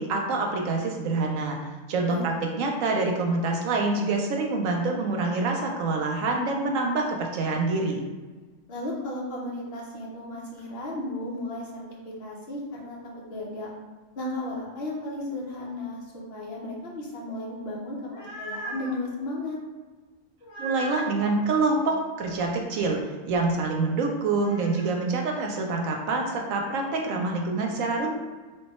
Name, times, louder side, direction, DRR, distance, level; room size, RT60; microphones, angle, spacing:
voice 1, 0.0-1.6 1.9-8.0 20.6-23.0 23.3-28.1, right 3 dB, 85° right, 2 dB, 1.0 m, -26 dB
voice 2, 8.7-13.0 13.3-13.7 14.2-19.6, left 1 dB, 50° left, -3 dB, 1.0 m, -34 dB
sound 1, 17.9-19.0 20.4-21.4 24.2-24.9, right 1 dB, 75° left, 1.5 m, -38 dB
3.5 x 2.2 x 4.1 m, 1.3 s
omnidirectional pair, 1.4 m